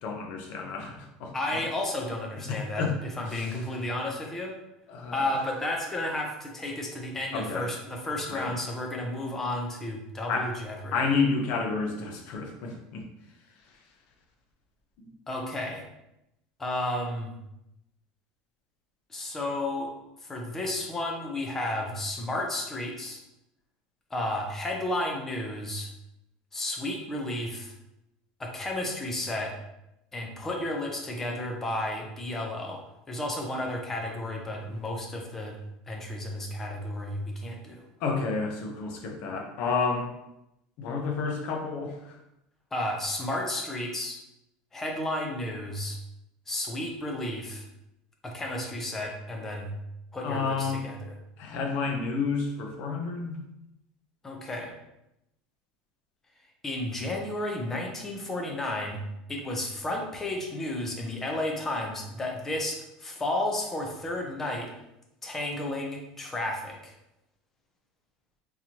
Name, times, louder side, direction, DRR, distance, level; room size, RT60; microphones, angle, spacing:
voice 1, 0.0-1.6 2.5-2.9 3.3-3.5 4.9-5.3 7.3-7.7 8.3-8.5 10.3-10.5 10.9-13.0 38.0-40.1 40.8-42.2 50.2-50.8 51.4-53.4, left 4 dB, 50° left, 2 dB, 0.7 m, -30 dB
voice 2, 1.3-4.6 5.1-10.9 15.3-15.9 16.6-17.4 19.1-19.9 20.2-23.2 24.1-25.9 26.5-27.7 28.4-29.5 30.1-32.8 33.1-35.6 35.9-37.8 42.7-44.2 44.7-46.0 46.5-47.6 48.2-49.7 50.1-51.1 54.2-54.7 56.6-59.0 59.3-64.7 65.2-66.9, left 1 dB, 10° left, 1 dB, 0.6 m, -32 dB
3.8 x 2.9 x 2.8 m, 0.86 s
cardioid pair, 170°, 3 cm